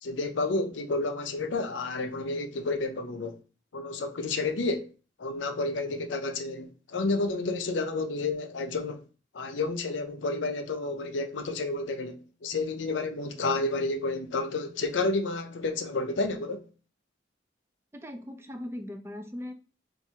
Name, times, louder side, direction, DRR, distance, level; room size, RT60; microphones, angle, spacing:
voice 1, 0.0-3.4 3.7-4.9 5.2-9.0 9.3-16.7, left 3 dB, 85° left, 0.5 m, -30 dB
voice 2, 17.9-19.5, left 1 dB, 15° right, 0.4 m, -39 dB
4.3 x 2.5 x 2.7 m
head